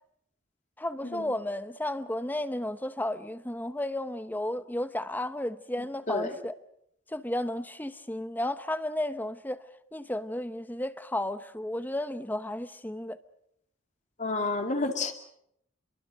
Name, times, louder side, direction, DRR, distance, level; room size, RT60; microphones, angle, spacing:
voice 1, 0.8-6.5 7.1-9.6 9.9-13.2, left 1 dB, 10° left, 0.9 m, -33 dB
voice 2, 14.2-15.1, left 3 dB, 35° left, 2.5 m, -30 dB
28.0 x 23.0 x 6.5 m
head